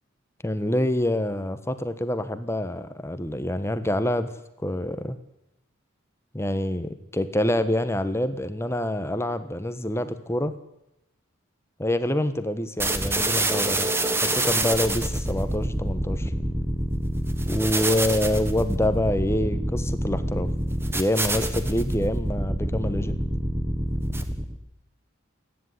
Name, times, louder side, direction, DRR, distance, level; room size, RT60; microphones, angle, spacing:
voice 1, 0.4-4.3 4.6-5.2 6.3-10.5 11.8-13.9 14.2-16.3 17.4-20.5 20.9-23.2, left 1 dB, 10° left, 11 dB, 1.3 m, -26 dB
sound 1, 12.8-24.6, right 1 dB, 10° right, 1.5 m, -26 dB
29.0 x 10.5 x 9.8 m, 0.85 s
head